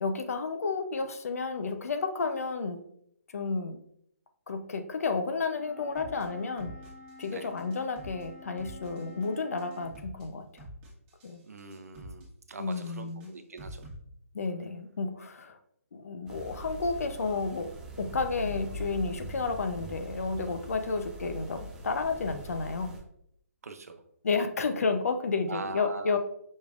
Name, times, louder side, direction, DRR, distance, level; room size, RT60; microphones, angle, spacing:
voice 1, 0.0-2.8 3.3-3.8 4.5-6.7 7.2-10.6 11.2-11.4 12.6-13.3 14.3-15.6 15.9-17.7 18.0-23.0 24.2-26.2, left 4 dB, 75° left, 8 dB, 0.6 m, -31 dB
Wind instrument woodwind instrument, 5.5-10.0, left 3 dB, 55° left, 1.7 m, -50 dB
sound 1, 6.0-6.2 6.6-7.3 7.6-8.2 8.6-9.3 9.6-10.2 10.6-11.3 11.6-12.2 12.6-14.0, right 1 dB, 25° right, 1.4 m, -46 dB
voice 2, 11.4-13.8 23.6-24.0 25.5-26.2, right 3 dB, 90° right, 7 dB, 0.6 m, -41 dB
sound 2, 16.3-23.0, right 1 dB, 10° right, 0.6 m, -42 dB
5.3 x 3.4 x 2.4 m, 0.71 s
hypercardioid pair, 155°, 8 cm